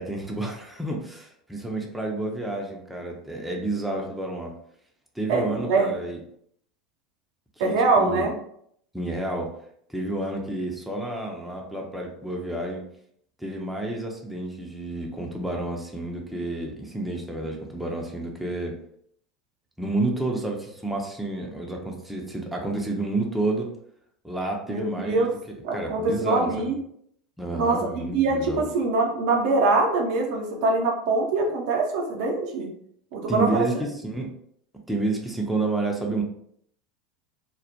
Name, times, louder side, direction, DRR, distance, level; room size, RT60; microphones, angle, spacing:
voice 1, 0.0-4.5 5.2-6.2 7.6-8.3 8.9-9.5 9.9-12.8 13.4-18.8 19.8-23.7 24.2-26.7 27.4-28.7 33.3-34.3 34.9-36.2, right 2 dB, ahead, -1 dB, 0.5 m, -30 dB
voice 2, 5.3-5.9 7.6-8.3 24.7-25.3 25.6-26.8 27.5-32.7 33.1-33.7, right 3 dB, 55° right, 1 dB, 0.5 m, -23 dB
2.2 x 2.0 x 2.8 m, 0.68 s
figure-of-eight pair, 80°, 4 cm